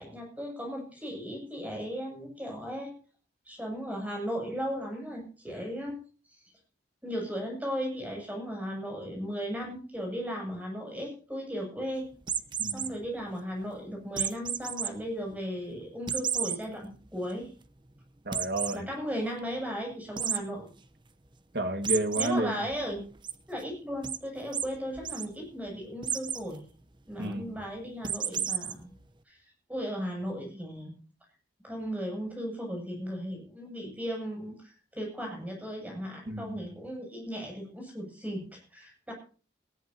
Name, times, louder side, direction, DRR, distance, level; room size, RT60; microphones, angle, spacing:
voice 1, 0.0-2.9 3.5-6.0 6.3-6.4 7.0-12.0 12.7-17.5 18.7-20.7 22.1-23.0 23.5-26.6 27.1-29.0 29.3-29.4 29.7-30.9 31.6-39.1, equal, 10° right, 0 dB, 7.9 m, -36 dB
sound 1, 12.2-12.9 14.2-14.9 15.3-15.4 16.1-16.6 17.1-17.2 17.4-17.5 18.3-18.8 20.2-20.4 21.8-22.3 22.7-23.3 24.0-24.2 24.5-24.7 24.9-25.3 26.0-26.4 28.0-28.7, right 8 dB, 25° right, 0.9 m, -31 dB
voice 2, 18.3-18.9 21.5-22.6 27.2-27.6 36.3-36.6, right 1 dB, 55° right, 8 dB, 2.0 m, -31 dB
19.0 x 17.0 x 2.9 m, 0.38 s
head